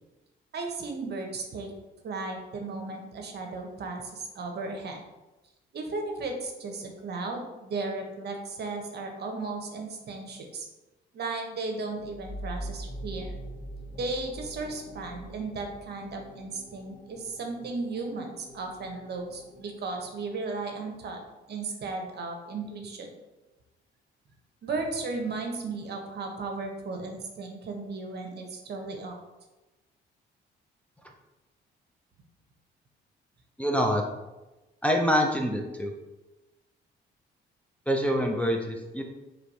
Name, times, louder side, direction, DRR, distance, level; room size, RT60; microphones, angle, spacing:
voice 1, 0.5-1.7 2.0-5.0 5.7-10.7 11.1-13.4 14.0-21.2 21.5-23.1 24.6-29.2, right 3 dB, 55° right, 3 dB, 0.8 m, -35 dB
sound 1, 11.9-21.3, right 1 dB, 50° left, 1.0 m, -43 dB
voice 2, 33.6-34.0 34.8-35.9 37.9-39.0, equal, 5° left, 0 dB, 0.5 m, -25 dB
3.2 x 3.2 x 4.0 m, 1.1 s
cardioid pair, 90°, 20 cm